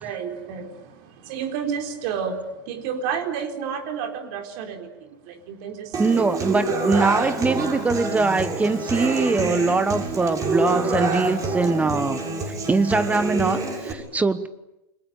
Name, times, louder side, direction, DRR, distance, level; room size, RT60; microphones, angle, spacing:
voice 1, 0.0-0.7 1.3-2.4 2.7-4.9 5.5-6.4, right 7 dB, 55° right, 6 dB, 4.1 m, -30 dB
Human voice / Acoustic guitar, 5.9-13.9, right 3 dB, 30° right, 7.1 m, -26 dB
voice 2, 6.0-12.2 12.5-14.5, right 3 dB, 10° right, 15 dB, 1.2 m, -22 dB
29.0 x 22.0 x 9.1 m, 0.92 s
hypercardioid pair, 100°, 11 cm